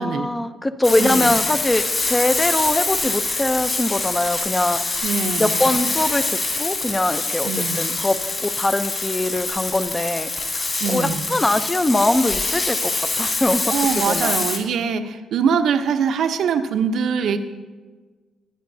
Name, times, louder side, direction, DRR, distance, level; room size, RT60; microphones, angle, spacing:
voice 1, 0.0-4.8 5.4-7.5 7.8-10.3 10.9-12.9 13.2-14.3, left 1 dB, 15° left, 11 dB, 0.7 m, -22 dB
Frying (food), 0.8-14.6, left 3 dB, 35° left, 3.3 m, -25 dB
voice 2, 1.0-1.3 5.0-5.8 7.4-7.8 10.8-11.3 13.7-17.4, right 6 dB, 70° right, 7 dB, 0.8 m, -23 dB
20.5 x 10.5 x 2.8 m, 1.4 s
cardioid pair, 90°, 0 cm